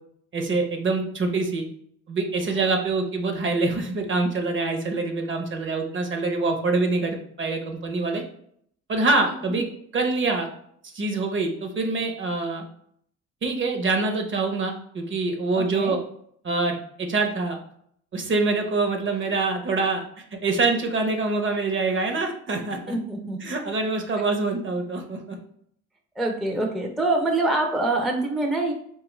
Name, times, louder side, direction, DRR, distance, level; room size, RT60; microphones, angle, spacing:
voice 1, 0.3-1.6 2.1-8.2 8.9-9.7 9.9-10.5 10.9-12.6 13.4-16.0 16.4-17.6 18.1-22.9 23.4-25.4, right 3 dB, 40° right, 4 dB, 0.7 m, -25 dB
voice 2, 15.5-16.0 22.9-23.4 26.2-28.7, right 2 dB, ahead, 2 dB, 0.4 m, -25 dB
3.5 x 2.3 x 3.0 m, 0.67 s
cardioid pair, 90°, 30 cm